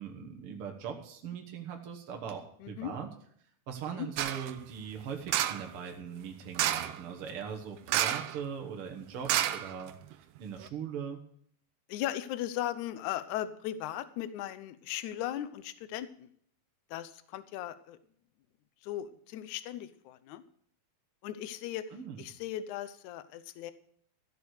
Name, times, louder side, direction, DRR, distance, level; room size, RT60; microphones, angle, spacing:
voice 1, 0.0-3.1 3.7-9.9 10.2-11.2 21.9-22.3, right 7 dB, 55° right, 3 dB, 1.6 m, -40 dB
voice 2, 2.6-2.9 3.9-4.1 11.9-16.3 16.9-18.0 18.8-20.4 21.2-21.9 22.2-23.7, left 12 dB, 75° left, 13 dB, 1.8 m, -37 dB
sound 1, 4.2-4.5 5.3-5.7 6.5-7.0 7.9-8.4 8.6-8.7 9.3-10.1 10.6-10.7, right 12 dB, 80° right, 2.0 m, -30 dB
14.5 x 7.0 x 6.5 m, 0.62 s
omnidirectional pair, 4.2 m